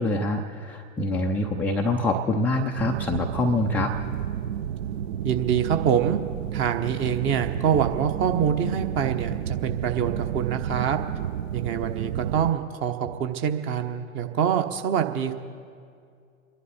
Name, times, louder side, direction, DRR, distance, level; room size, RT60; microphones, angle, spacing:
voice 1, 0.0-3.9, left 2 dB, 5° left, 0 dB, 0.4 m, -25 dB
sound 1, 2.8-12.5, right 10 dB, 50° right, 0.7 m, -31 dB
voice 2, 5.2-6.2 6.5-11.0 11.5-15.3, right 8 dB, 30° right, 6 dB, 1.1 m, -25 dB
28.0 x 11.0 x 4.3 m, 2.3 s
figure-of-eight pair, 100°, 41 cm